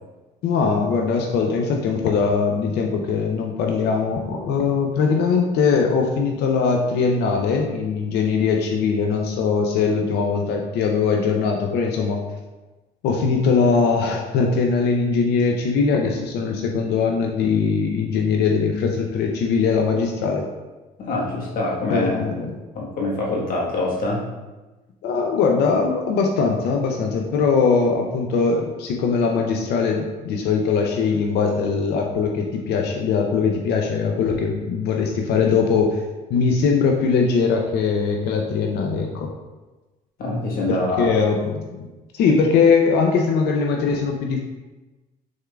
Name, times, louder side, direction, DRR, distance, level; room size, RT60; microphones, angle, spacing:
voice 1, 0.4-12.2 13.0-20.5 21.9-22.5 25.0-36.0 36.3-39.3 40.7-41.9 42.1-44.4, left 5 dB, 80° left, 1 dB, 0.5 m, -21 dB
voice 2, 21.0-22.3 22.7-24.2 40.2-41.1, left 2 dB, 60° left, -3 dB, 1.3 m, -25 dB
6.3 x 3.6 x 2.3 m, 1.2 s
cardioid pair, 110°, 17 cm